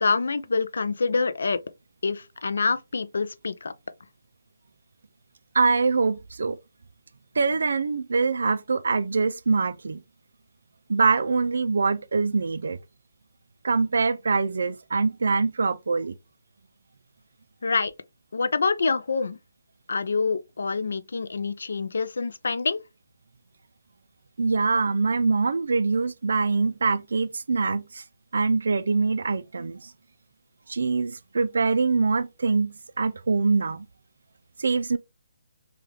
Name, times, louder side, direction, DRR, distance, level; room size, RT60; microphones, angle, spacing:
voice 1, 0.0-1.6 2.0-3.7 17.6-17.9 18.3-19.4 19.9-22.8, left 4 dB, 60° left, 0.3 m, -26 dB
voice 2, 5.5-6.6 7.4-10.0 10.9-12.8 13.6-16.1 24.4-28.0 28.3-29.9 30.7-33.9 34.6-35.0, right 4 dB, 55° right, 0.3 m, -24 dB
3.4 x 2.3 x 2.9 m
hypercardioid pair, 180°, 0 cm